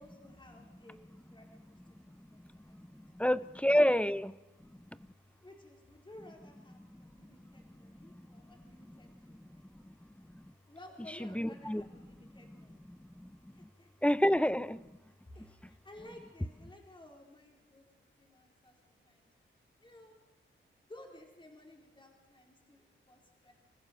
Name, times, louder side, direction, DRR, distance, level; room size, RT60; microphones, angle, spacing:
voice 1, 0.0-2.8 3.3-3.4 5.4-9.7 10.7-12.9 13.5-14.1 15.3-19.3 19.8-20.2 20.9-23.5, left 1 dB, 25° left, 1 dB, 4.2 m, -56 dB
voice 2, 3.1-4.4 10.3-10.4 11.2-11.8 13.2-13.3 14.0-14.8, equal, 5° left, 16 dB, 0.7 m, -28 dB
26.5 x 15.0 x 7.0 m, 1.0 s
cardioid pair, 85°, 21 cm